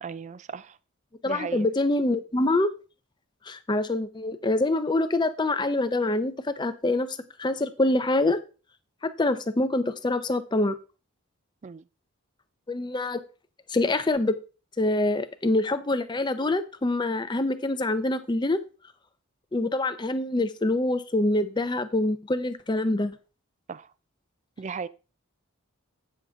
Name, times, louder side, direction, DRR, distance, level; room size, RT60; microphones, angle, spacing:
voice 1, 0.0-0.8 1.3-1.6 11.6-11.8 23.7-23.9 24.6-24.9, right 5 dB, 30° right, 0.3 m, -36 dB
voice 2, 1.2-2.7 3.5-8.4 9.0-10.8 12.7-13.2 13.7-14.4 14.8-18.6 19.5-23.1, left 2 dB, 20° left, 0.5 m, -25 dB
9.0 x 6.5 x 3.5 m
head